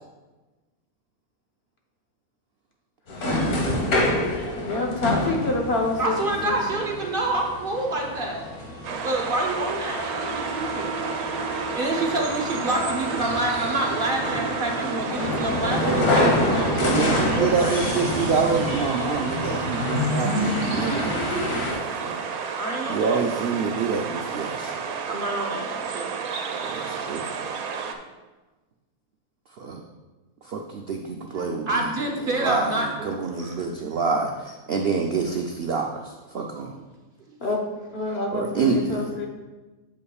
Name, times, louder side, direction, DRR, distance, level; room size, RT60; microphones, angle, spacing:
sound 1, 3.1-21.7, left 1 dB, 90° left, 1.8 m, -27 dB
voice 1, 3.2-4.0 15.8-22.2 22.9-24.8 26.6-27.3 29.6-29.8 30.5-31.8 32.4-32.7 33.0-36.7 38.3-39.1, right 5 dB, 65° right, 2 dB, 0.6 m, -27 dB
voice 2, 4.6-6.1 6.4-6.5 37.4-37.6 37.9-39.3, left 2 dB, 50° left, 1 dB, 1.1 m, -26 dB
voice 3, 6.0-8.4 8.7-11.0 11.3-11.4 11.7-16.6 17.0-17.8 22.6-23.2 25.1-26.2 31.3-33.7 37.3-37.4, right 2 dB, 45° right, 1 dB, 1.0 m, -28 dB
sound 2, 8.8-28.0, right 6 dB, 85° right, 1.2 m, -32 dB
8.4 x 7.5 x 2.3 m, 1.2 s
omnidirectional pair, 1.5 m